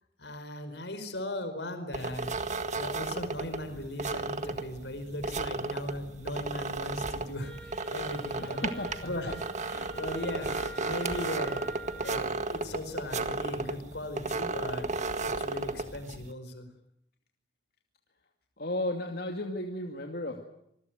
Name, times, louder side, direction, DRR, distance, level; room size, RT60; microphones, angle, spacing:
voice 1, 0.2-8.7 9.0-11.6 12.0-14.9 15.2-16.7, left 1 dB, 80° left, 9 dB, 4.9 m, -38 dB
sound 1, 1.9-16.3, right 3 dB, 45° right, 1.7 m, -34 dB
Wind instrument woodwind instrument, 7.4-12.3, right 2 dB, 5° left, 5.8 m, -45 dB
voice 2, 8.4-9.3 9.7-9.9 18.6-20.4, left 1 dB, 60° left, 3 dB, 2.6 m, -35 dB
26.5 x 21.0 x 9.3 m, 0.76 s
head